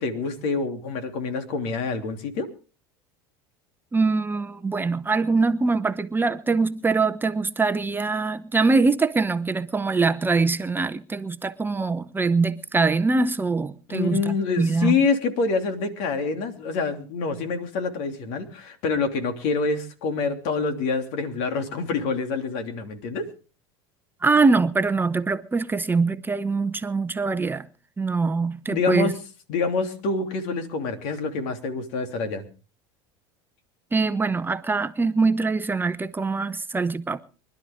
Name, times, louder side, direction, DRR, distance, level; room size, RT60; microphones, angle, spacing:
voice 1, 0.0-2.5 13.9-23.3 28.7-29.2 29.5-32.4, left 4 dB, 65° left, 3.0 m, -26 dB
voice 2, 3.9-15.0 24.2-27.7 28.0-29.1 33.9-37.2, right 4 dB, 15° right, 0.8 m, -23 dB
24.0 x 12.0 x 3.6 m
hypercardioid pair, 95°, 13 cm